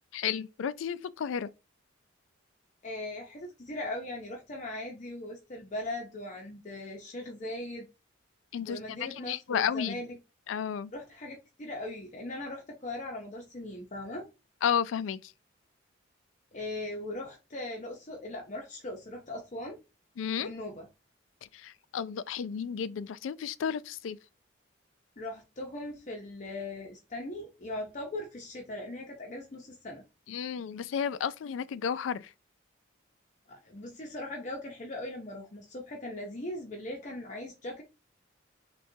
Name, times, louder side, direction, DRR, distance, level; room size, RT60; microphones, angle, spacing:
voice 1, 0.1-1.5 8.5-10.0 10.5-10.9 14.6-15.3 20.2-20.5 21.5-24.2 30.3-32.3, left 8 dB, 85° left, 0.3 m, -32 dB
voice 2, 2.8-7.9 8.6-10.2 10.9-14.3 16.5-19.8 20.4-20.9 25.2-30.0 33.5-37.8, left 1 dB, 40° left, 0.6 m, -39 dB
6.4 x 2.3 x 2.7 m
head